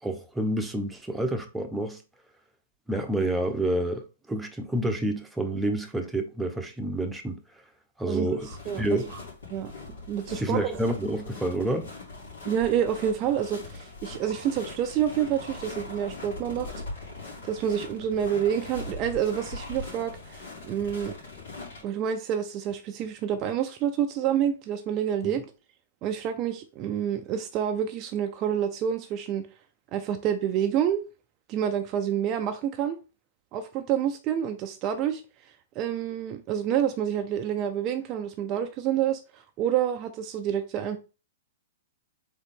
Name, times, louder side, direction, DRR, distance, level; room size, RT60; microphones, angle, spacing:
voice 1, 0.0-2.0 2.9-7.4 8.0-8.5 8.8-9.1 10.3-11.9 25.2-25.3, right 1 dB, 5° right, 0.8 m, -28 dB
voice 2, 8.1-9.0 9.5-9.7 10.1-10.7 12.4-16.7 17.4-21.2 21.8-25.4 26.0-29.5 29.9-31.1 31.5-33.0 33.5-35.2 35.8-41.0, right 9 dB, 35° right, 0.4 m, -28 dB
sound 1, 8.4-21.8, left 3 dB, 75° left, 2.7 m, -41 dB
3.9 x 3.6 x 3.5 m
hypercardioid pair, 120°, 0 cm